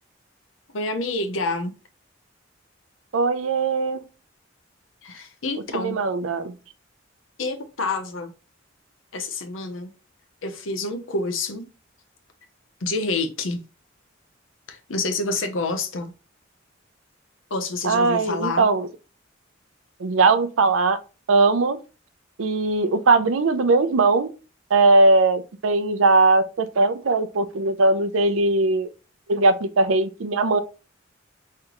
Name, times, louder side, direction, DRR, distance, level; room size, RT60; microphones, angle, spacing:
voice 1, 0.7-1.7 5.0-6.0 7.4-8.3 9.1-9.9 10.4-11.7 12.8-13.6 14.7-16.1 17.5-18.7, left 3 dB, 80° left, 0.7 m, -28 dB
voice 2, 3.1-4.0 5.7-6.5 17.8-18.9 20.0-21.0 21.3-21.8 22.4-24.3 24.7-28.9 29.3-30.6, right 3 dB, 90° right, 0.5 m, -19 dB
3.7 x 3.3 x 3.0 m
head